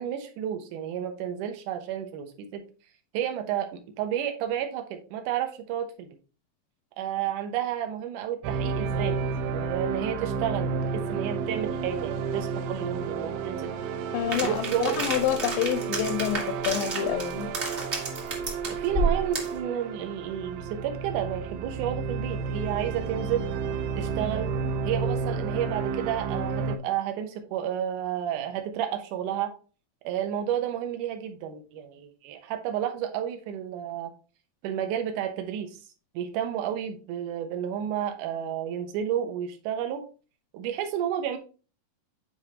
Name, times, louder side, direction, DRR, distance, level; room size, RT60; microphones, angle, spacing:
voice 1, 0.0-2.6 3.1-3.7 4.0-6.1 7.0-9.2 9.5-13.7 14.4-15.0 18.7-23.5 24.0-24.5 24.8-29.5 30.0-34.1 34.6-35.8 36.1-40.0 40.5-41.4, right 10 dB, 70° right, 6 dB, 2.3 m, -31 dB
sound 1, 8.4-26.8, right 5 dB, 85° right, 2.6 m, -31 dB
voice 2, 14.1-17.5, left 11 dB, 80° left, 9 dB, 2.2 m, -28 dB
sound 2, 14.3-19.6, right 2 dB, 35° right, 1.0 m, -31 dB
9.2 x 4.7 x 2.9 m, 0.35 s
omnidirectional pair, 4.2 m